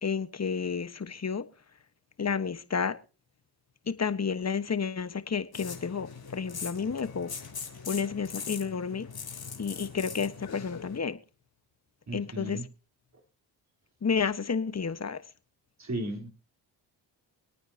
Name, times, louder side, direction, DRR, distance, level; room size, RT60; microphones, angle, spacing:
voice 1, 0.0-1.4 2.2-2.9 3.9-6.1 6.3-7.3 7.9-9.1 9.6-11.2 12.1-12.6 14.0-15.2, left 6 dB, 30° left, 1.5 m, -31 dB
sound 1, 5.5-11.0, left 6 dB, 50° left, 3.6 m, -41 dB
voice 2, 12.1-12.7 15.8-16.3, right 1 dB, 35° right, 4.0 m, -35 dB
25.5 x 9.3 x 2.9 m
supercardioid pair, 50°, 49 cm